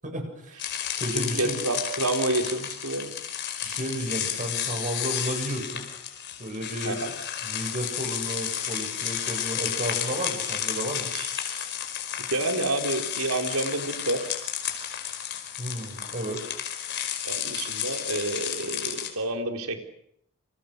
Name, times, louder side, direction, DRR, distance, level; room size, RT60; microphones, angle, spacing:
voice 1, 0.0-0.7 1.0-1.6 3.6-5.9 6.4-7.0 7.4-11.1 15.6-16.4, right 1 dB, 35° right, 4 dB, 7.7 m, -33 dB
sound 1, 0.6-19.1, left 9 dB, 55° left, 5.0 m, -32 dB
voice 2, 1.1-3.1 6.8-7.1 11.1-11.7 12.3-14.3 17.2-19.8, right 2 dB, 85° right, 5 dB, 4.0 m, -29 dB
29.5 x 27.0 x 6.8 m, 0.71 s
head